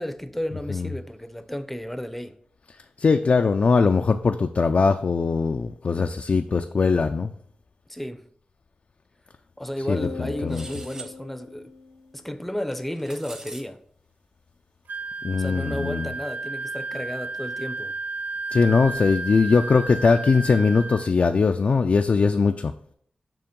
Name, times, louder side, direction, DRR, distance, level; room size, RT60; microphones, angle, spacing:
voice 1, 0.0-2.4 7.9-8.3 9.6-11.7 12.1-13.8 15.4-17.9, equal, 5° left, 0.6 m, -33 dB
voice 2, 3.0-7.3 9.9-10.7 15.2-16.1 18.5-22.7, left 4 dB, 55° left, 0.3 m, -21 dB
sound 1, 9.9-12.5, left 5 dB, 80° left, 0.9 m, -41 dB
sound 2, 10.5-11.1 12.7-13.6, right 3 dB, 25° right, 0.9 m, -42 dB
Wind instrument woodwind instrument, 14.9-21.1, right 3 dB, 70° right, 0.3 m, -33 dB
7.0 x 3.0 x 5.1 m
cardioid pair, 65°, 3 cm